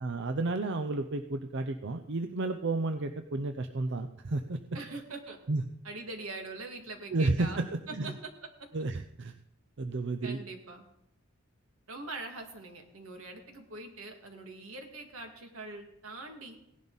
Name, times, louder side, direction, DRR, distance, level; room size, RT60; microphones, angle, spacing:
voice 1, 0.0-4.6 5.5-5.6 7.1-8.1 8.7-9.3 9.8-10.4, right 2 dB, 60° right, 8 dB, 0.6 m, -32 dB
voice 2, 4.7-5.4 5.8-7.6 8.0-8.1 10.2-10.9 11.9-16.6, right 2 dB, 85° right, 4 dB, 2.2 m, -43 dB
17.0 x 11.0 x 4.0 m, 0.82 s
head